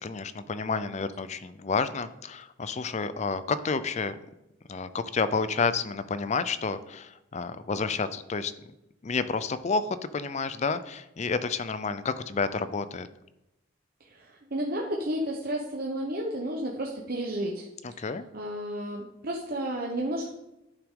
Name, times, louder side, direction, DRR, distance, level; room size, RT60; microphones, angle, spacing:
voice 1, 0.0-4.2 4.7-8.5 9.0-13.1 17.8-18.2, left 4 dB, 35° left, 13 dB, 0.4 m, -30 dB
voice 2, 14.0-20.3, right 1 dB, 45° right, -1 dB, 0.9 m, -32 dB
10.5 x 5.9 x 3.7 m, 0.91 s
head